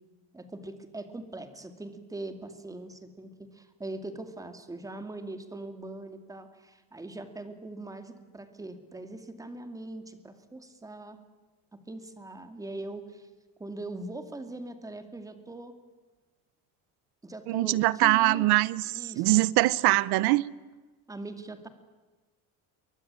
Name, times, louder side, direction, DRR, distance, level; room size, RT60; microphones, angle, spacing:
voice 1, 0.3-11.2 11.7-13.3 13.6-15.8 17.2-18.6 18.9-19.5 21.1-21.7, right 2 dB, 10° right, 2.4 m, -41 dB
voice 2, 17.5-20.5, right 19 dB, 90° right, 0.9 m, -23 dB
29.0 x 22.5 x 9.0 m
cardioid pair, 175°, 38 cm